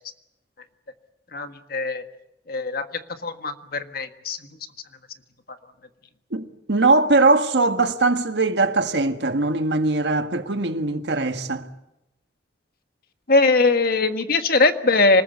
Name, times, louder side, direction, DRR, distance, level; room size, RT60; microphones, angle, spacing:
voice 1, 1.3-2.0 2.5-4.6 13.3-15.2, left 3 dB, 55° left, 1.6 m, -21 dB
voice 2, 6.3-11.6, right 3 dB, 75° right, 1.6 m, -21 dB
26.0 x 20.0 x 8.4 m
head